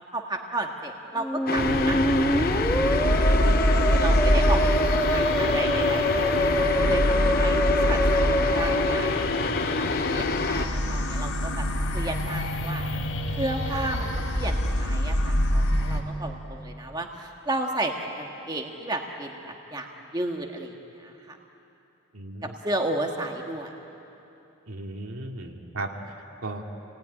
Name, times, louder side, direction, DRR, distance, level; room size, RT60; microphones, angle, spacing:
voice 1, 0.0-2.4 2.9-3.4 3.9-6.3 6.6-9.8 10.1-11.6 11.9-12.8 13.4-21.4 22.4-23.7, right 1 dB, 20° right, 2 dB, 1.5 m, -33 dB
Musical instrument, 1.2-9.9, equal, 5° left, 1.2 m, -26 dB
sound 1, 1.5-10.6, left 3 dB, 40° left, 0.7 m, -27 dB
sound 2, 1.6-16.0, equal, 85° left, 2.8 m, -26 dB
voice 2, 22.1-22.5 24.7-26.1 26.4-26.6, right 2 dB, 75° right, 2 dB, 2.3 m, -36 dB
28.0 x 19.0 x 9.8 m, 2.9 s
head